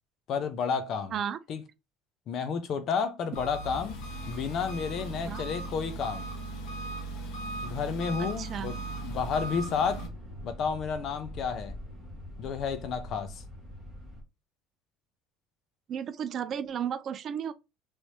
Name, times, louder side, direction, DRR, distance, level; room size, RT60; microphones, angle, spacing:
voice 1, 0.3-1.2 1.5-1.6 2.3-4.0 4.3-6.3 7.6-10.1 10.4-11.7 12.4-13.4, left 6 dB, 45° left, 0.6 m, -31 dB
Engine, 3.3-10.1, right 2 dB, 75° left, 1.2 m, -38 dB
voice 2, 8.2-8.7 15.9-17.5, right 8 dB, 35° right, 0.4 m, -33 dB
sound 1, 9.1-14.2, left 1 dB, 10° left, 1.3 m, -43 dB
3.2 x 3.2 x 2.7 m
cardioid pair, 155°, 0 cm